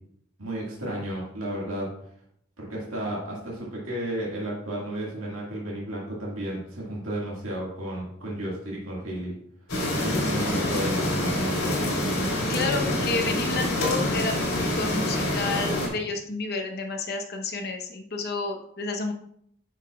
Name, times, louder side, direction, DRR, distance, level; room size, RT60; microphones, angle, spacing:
voice 1, 0.4-1.9 2.6-9.3 9.9-11.8, right 1 dB, 75° right, -4 dB, 1.9 m, -33 dB
sound 1, 9.7-15.9, left 1 dB, 75° left, 2.7 m, -26 dB
voice 2, 12.5-19.1, left 3 dB, 50° left, 3 dB, 0.9 m, -30 dB
9.7 x 5.9 x 2.4 m, 0.70 s
head